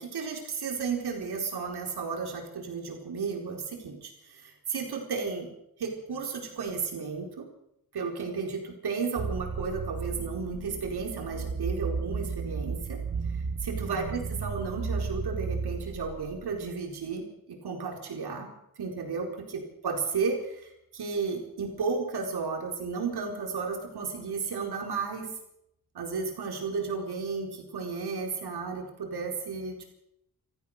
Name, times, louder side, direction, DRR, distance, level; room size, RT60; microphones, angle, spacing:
voice 1, 0.0-5.5 5.8-7.5 7.9-13.0 13.6-25.3 25.9-29.8, right 5 dB, 85° right, 2 dB, 4.4 m, -33 dB
sound 1, 9.2-16.7, right 5 dB, 55° right, 2.1 m, -34 dB
27.5 x 15.0 x 6.6 m, 0.79 s
wide cardioid pair, 170°, 38 cm